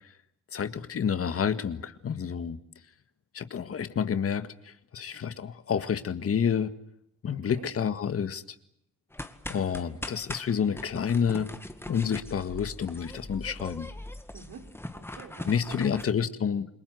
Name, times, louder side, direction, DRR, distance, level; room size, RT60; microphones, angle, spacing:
voice 1, 0.5-2.6 3.3-6.7 7.2-8.4 9.5-11.5 11.9-13.9 15.5-16.7, left 7 dB, 50° left, 11 dB, 1.8 m, -29 dB
voice 2, 7.3-7.7 14.3-16.3, right 6 dB, 70° right, 5 dB, 4.2 m, -48 dB
sound 1, 9.1-16.0, left 1 dB, 10° left, 1.9 m, -41 dB
28.5 x 22.0 x 7.9 m, 0.75 s
cardioid pair, 90°, 30 cm